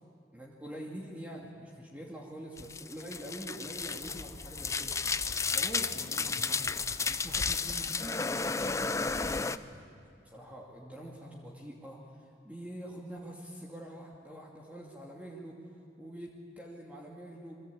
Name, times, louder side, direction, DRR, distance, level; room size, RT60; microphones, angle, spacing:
voice 1, 0.3-5.1 5.5-9.9 10.2-15.6 16.0-17.6, right 1 dB, 10° right, -3 dB, 2.5 m, -45 dB
sound 1, 2.6-9.6, left 4 dB, 15° left, 0.6 m, -33 dB
29.0 x 23.0 x 8.6 m, 2.5 s
head